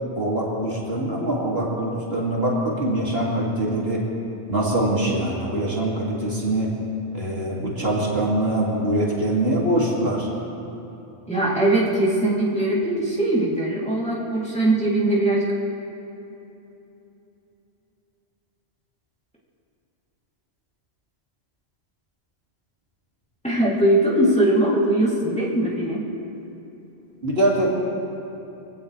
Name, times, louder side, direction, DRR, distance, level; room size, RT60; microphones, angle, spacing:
voice 1, 0.2-4.0 4.5-6.7 7.1-10.3 27.2-27.7, right 1 dB, 60° right, -4 dB, 2.7 m, -23 dB
voice 2, 11.3-15.5 23.4-26.0, right 1 dB, 5° left, -7 dB, 3.0 m, -21 dB
24.5 x 17.0 x 3.3 m, 3.0 s
omnidirectional pair, 1.1 m